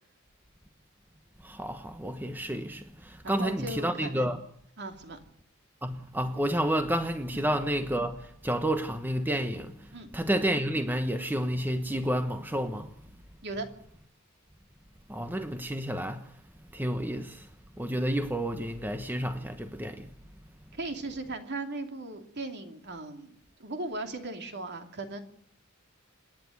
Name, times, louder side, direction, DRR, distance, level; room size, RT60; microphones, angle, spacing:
voice 1, 1.4-4.4 5.8-13.1 15.1-16.4 16.7-17.5 17.8-20.1, equal, 10° right, 1.0 m, -30 dB
voice 2, 3.2-4.4 4.8-5.2 7.3-7.4 9.9-10.1 13.4-13.7 20.7-25.2, right 2 dB, 55° right, 2.8 m, -37 dB
27.5 x 10.5 x 9.4 m
head